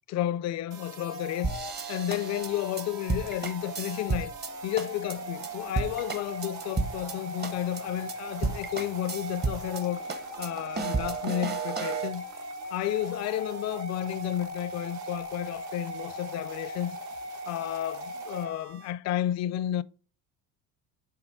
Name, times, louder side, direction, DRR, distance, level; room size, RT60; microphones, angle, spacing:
voice 1, 0.1-1.5 1.9-4.3 4.6-10.0 10.4-12.2 12.7-17.0 17.4-19.8, left 12 dB, 45° left, 0.4 m, -32 dB
sound 1, 0.7-18.9, right 1 dB, 50° right, 1.4 m, -39 dB
sound 2, 1.4-4.5 4.8-5.1 5.4-5.5 5.8-7.1 7.4-7.8 8.1-8.2 8.4-9.8 10.1-12.1, right 4 dB, 25° right, 0.9 m, -32 dB
sound 3, 1.5-15.0, right 5 dB, 75° right, 1.7 m, -55 dB
8.4 x 2.9 x 5.2 m
supercardioid pair, 105°, 37 cm